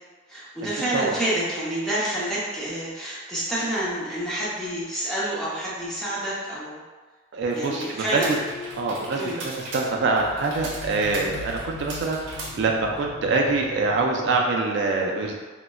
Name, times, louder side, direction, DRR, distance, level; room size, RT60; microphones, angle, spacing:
voice 1, 0.3-6.8 7.5-8.4 9.1-9.4, right 1 dB, 5° left, -9 dB, 0.7 m, -28 dB
voice 2, 7.3-8.2 8.8-15.3, right 3 dB, 65° right, 0 dB, 0.3 m, -25 dB
sound 1, 7.5-13.0, right 2 dB, 85° right, 0.7 m, -39 dB
sound 2, 8.1-14.4, left 3 dB, 65° left, 0.4 m, -40 dB
3.8 x 2.1 x 2.2 m, 1.4 s
head